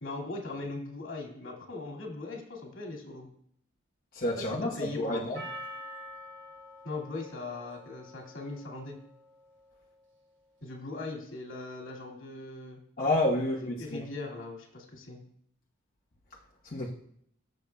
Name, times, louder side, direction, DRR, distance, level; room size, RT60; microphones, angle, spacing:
voice 1, 0.0-3.3 4.5-5.4 6.8-9.0 10.6-12.8 13.4-15.2, left 2 dB, 85° left, -1 dB, 2.3 m, -40 dB
voice 2, 4.1-5.4 13.0-14.0 16.6-16.9, left 1 dB, 45° left, -4 dB, 1.1 m, -29 dB
Percussion, 5.4-9.7, equal, 65° right, 2.6 m, -46 dB
18.5 x 6.9 x 2.3 m, 0.69 s
head